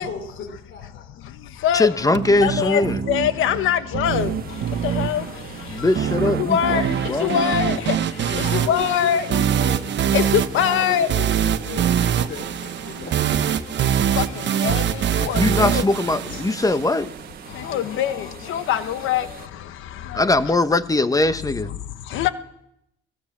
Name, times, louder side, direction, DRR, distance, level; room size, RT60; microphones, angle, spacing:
voice 1, 0.0-1.1 8.2-10.1 10.5-13.5, left 4 dB, 70° left, 4.5 m, -35 dB
voice 2, 0.9-2.1 2.4-9.3 10.1-11.1 12.2-12.3 12.8-13.0 13.8-15.9 17.5-20.3 21.7-22.3, left 10 dB, 85° left, 1.2 m, -25 dB
voice 3, 1.7-3.0 5.7-7.8 15.2-17.1 20.1-21.7, left 2 dB, 15° left, 1.4 m, -21 dB
sound 1, 2.1-17.1, right 9 dB, 65° right, 1.2 m, -24 dB
sound 2, 4.0-19.5, right 6 dB, 50° right, 1.8 m, -42 dB
23.0 x 18.0 x 7.6 m
cardioid pair, 90°, 20 cm